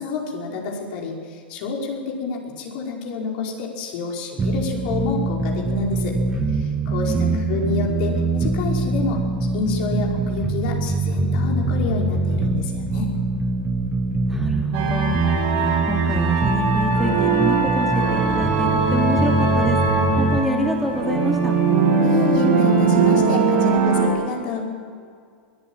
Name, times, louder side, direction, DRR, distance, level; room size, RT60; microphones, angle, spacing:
voice 1, 0.0-6.2 6.5-9.2 9.5-13.1 22.0-24.6, left 4 dB, 55° left, 0 dB, 5.1 m, -28 dB
sound 1, 4.4-20.4, right 3 dB, 20° right, 1.9 m, -23 dB
voice 2, 7.1-7.6 14.3-15.2 15.5-19.8 20.2-21.5, left 1 dB, ahead, 0 dB, 2.8 m, -27 dB
sound 2, 14.7-24.1, right 4 dB, 55° right, 6.4 m, -20 dB
22.0 x 15.0 x 8.9 m, 2.1 s
hypercardioid pair, 105°, 6 cm